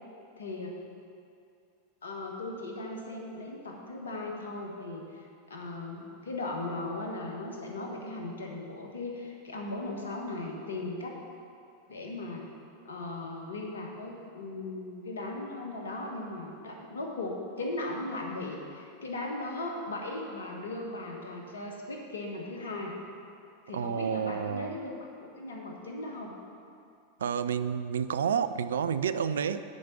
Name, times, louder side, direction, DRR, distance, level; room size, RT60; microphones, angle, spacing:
voice 1, 0.4-0.7 2.0-11.2 11.9-12.5 12.8-22.9 23.7-26.3, left 2 dB, 70° left, 0 dB, 1.5 m, -38 dB
voice 2, 23.7-24.8 27.2-29.6, right 7 dB, 70° right, 12 dB, 0.3 m, -30 dB
9.9 x 5.1 x 7.2 m, 2.5 s
figure-of-eight pair, 85°, 0 cm